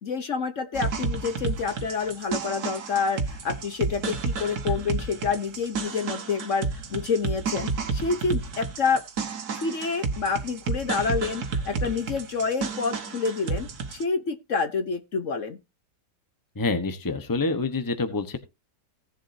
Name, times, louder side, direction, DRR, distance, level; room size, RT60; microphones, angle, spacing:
voice 1, 0.0-6.6 6.9-9.0 9.6-15.6, left 5 dB, 55° left, 1.3 m, -28 dB
sound 1, 0.7-14.0, right 4 dB, 70° right, 1.9 m, -31 dB
voice 2, 16.5-18.4, left 3 dB, 15° left, 1.0 m, -27 dB
17.5 x 7.4 x 2.7 m
omnidirectional pair, 1.7 m